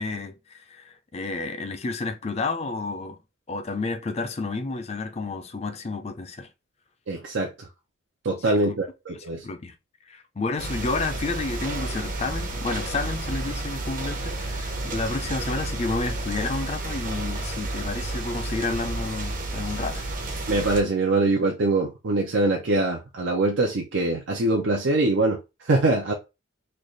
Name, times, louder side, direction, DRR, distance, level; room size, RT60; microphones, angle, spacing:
voice 1, 0.0-3.2 3.5-6.5 8.4-8.8 9.4-9.7 10.1-20.1, left 3 dB, 35° left, 0.4 m, -30 dB
voice 2, 7.1-7.7 8.2-9.5 20.5-26.1, right 2 dB, 75° right, 0.6 m, -23 dB
sound 1, 10.6-20.8, right 2 dB, 45° right, 0.8 m, -31 dB
3.3 x 2.4 x 3.8 m
head